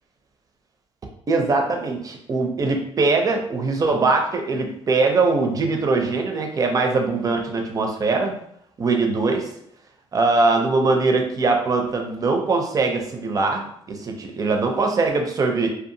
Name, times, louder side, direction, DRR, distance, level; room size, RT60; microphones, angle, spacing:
voice 1, 1.3-8.4 8.8-9.5 10.1-15.7, right 3 dB, 35° right, 3 dB, 0.5 m, -21 dB
2.7 x 2.3 x 2.6 m, 0.71 s
cardioid pair, 110°, 11 cm